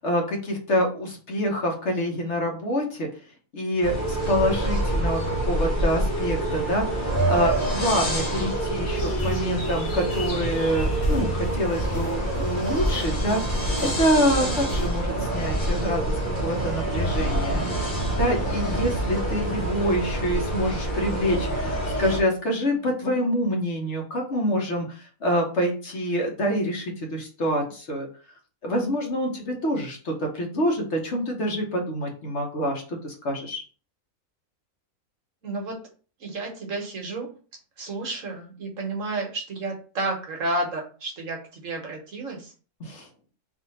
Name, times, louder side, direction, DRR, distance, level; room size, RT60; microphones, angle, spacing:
voice 1, 0.0-3.1 3.5-17.6 18.2-28.1 28.6-33.6 42.8-43.1, equal, 55° left, 1 dB, 1.2 m, -26 dB
sound 1, 3.8-22.2, right 1 dB, 35° left, 1.2 m, -26 dB
sound 2, 9.0-14.9, right 1 dB, 70° left, 1.7 m, -41 dB
voice 2, 14.4-14.7 35.4-35.8 36.2-37.3 37.8-42.5, right 2 dB, 60° right, 1 dB, 1.3 m, -31 dB
3.5 x 2.8 x 3.9 m, 0.38 s
omnidirectional pair, 1.6 m